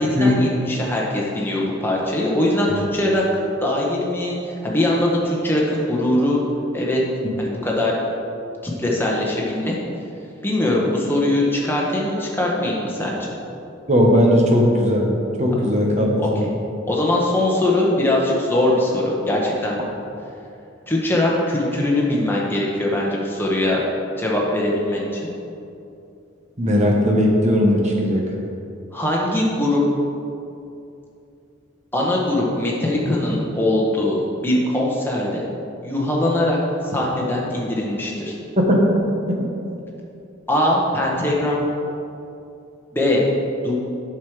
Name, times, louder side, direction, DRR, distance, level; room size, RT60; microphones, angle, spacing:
voice 1, 0.0-6.4 6.7-7.0 7.4-7.9 8.6-9.8 10.4-13.3 16.2-16.3 16.9-19.8 20.9-23.8 24.2-25.3 28.9-29.8 31.9-35.4 35.8-36.6 36.9-38.4 40.5-41.6 42.9-43.3 43.6-43.8, left 1 dB, 10° left, -3 dB, 1.3 m, -21 dB
voice 2, 13.9-15.1 15.4-16.2 26.6-28.2 38.6-39.0 39.3-39.5, equal, 35° right, 0 dB, 1.2 m, -17 dB
8.2 x 6.2 x 4.9 m, 2.7 s
head